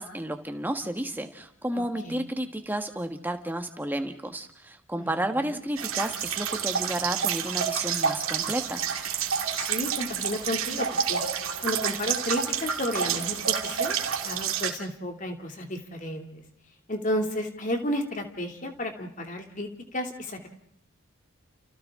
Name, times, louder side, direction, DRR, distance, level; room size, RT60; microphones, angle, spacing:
voice 1, 0.0-8.9, right 1 dB, 10° right, 6 dB, 1.4 m, -32 dB
voice 2, 1.8-2.2 5.0-5.1 5.5-5.6 9.6-11.2 11.6-14.0 14.2-16.4 16.9-20.5, left 1 dB, 35° left, 4 dB, 2.6 m, -32 dB
sound 1, 5.8-14.7, right 7 dB, 80° right, 2.2 m, -29 dB
30.0 x 29.0 x 3.7 m, 0.68 s
head